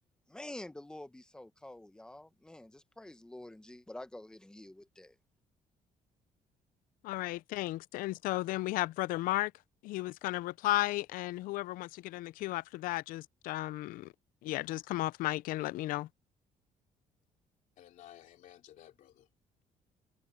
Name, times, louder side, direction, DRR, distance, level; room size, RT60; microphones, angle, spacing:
voice 1, 0.3-5.2, left 1 dB, 5° left, 0.9 m, -48 dB
voice 2, 7.0-9.5 9.8-14.1 14.4-16.1, left 17 dB, 85° left, 0.4 m, -34 dB
voice 3, 17.8-19.3, left 12 dB, 65° left, 2.9 m, -55 dB
cardioid pair, 170°, 14 cm